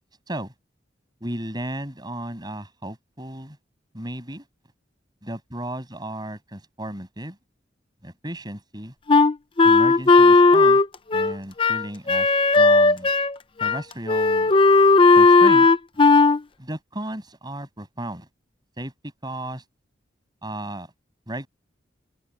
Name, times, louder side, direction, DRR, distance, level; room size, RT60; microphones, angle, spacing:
voice 1, 1.2-3.6 3.9-4.4 5.2-7.4 8.0-8.9 9.6-10.8 11.1-12.3 12.6-13.1 13.6-14.5 15.1-15.7 15.9-16.0 16.6-18.3 18.8-19.6 20.4-20.9 21.3-21.5, right 1 dB, 25° right, 7.5 m, -34 dB
Wind instrument woodwind instrument, 9.1-13.3 13.6-13.8 14.1-16.4, left 3 dB, 30° left, 0.6 m, -15 dB
open air
head